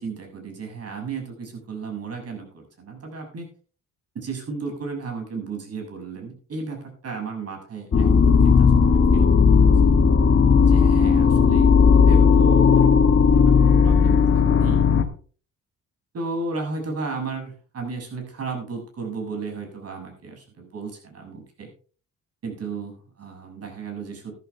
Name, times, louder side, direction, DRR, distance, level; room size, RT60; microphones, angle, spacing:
voice 1, 0.0-3.5 4.1-9.7 10.5-14.9 16.1-21.7 22.4-24.4, right 4 dB, 55° right, 3 dB, 7.2 m, -34 dB
sound 1, 7.9-15.0, left 5 dB, 45° left, 1.8 m, -16 dB
13.5 x 13.0 x 3.5 m, 0.40 s
cardioid pair, 90°, 30 cm